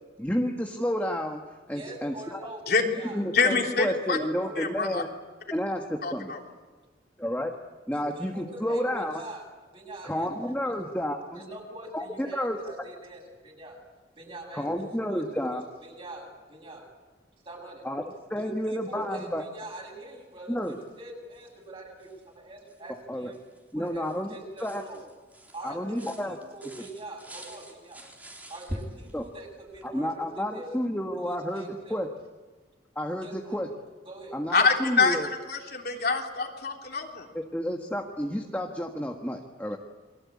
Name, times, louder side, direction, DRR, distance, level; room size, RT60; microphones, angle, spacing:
voice 1, 0.2-1.4 1.7-2.4 3.1-5.1 5.5-6.3 7.2-7.5 7.9-9.2 10.0-11.4 11.9-12.6 14.5-15.6 17.8-18.0 18.3-19.4 20.5-20.8 23.1-23.3 23.7-24.8 25.6-26.4 29.1-29.2 29.8-32.1 32.9-33.7 34.3-35.3 37.3-39.8, equal, 10° left, 1 dB, 1.6 m, -30 dB
voice 2, 1.7-3.2 4.2-4.6 7.9-9.4 9.7-10.3 10.6-10.7 11.3-13.8 14.2-15.2 15.5-16.9 17.4-17.9 18.4-23.4 23.7-25.0 25.5-28.0 28.5-30.8 31.2-32.0 33.2-33.6 34.1-34.4, right 2 dB, 30° right, 0 dB, 7.8 m, -43 dB
voice 3, 3.3-4.2 4.6-5.0 6.0-6.4 34.5-37.3, left 4 dB, 55° left, 1 dB, 3.4 m, -25 dB
sound 1, 20.6-21.0 21.3-21.5 22.0-22.2 22.7-29.9, equal, 10° right, 3.4 m, -44 dB
29.5 x 23.0 x 8.6 m, 1.3 s
head